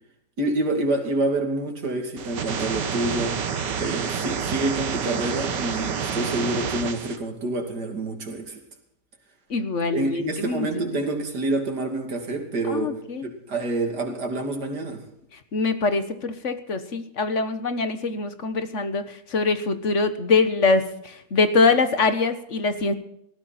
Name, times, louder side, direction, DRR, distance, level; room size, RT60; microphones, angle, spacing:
voice 1, 0.4-3.4 3.7-8.6 9.9-13.0 13.2-15.0, right 2 dB, 75° right, 3.2 m, -27 dB
sound 1, 2.2-7.2, right 6 dB, 90° right, 2.0 m, -28 dB
voice 2, 9.5-10.9 12.7-13.3 15.5-22.9, left 4 dB, 45° left, 1.5 m, -23 dB
19.0 x 14.5 x 4.3 m
omnidirectional pair, 1.8 m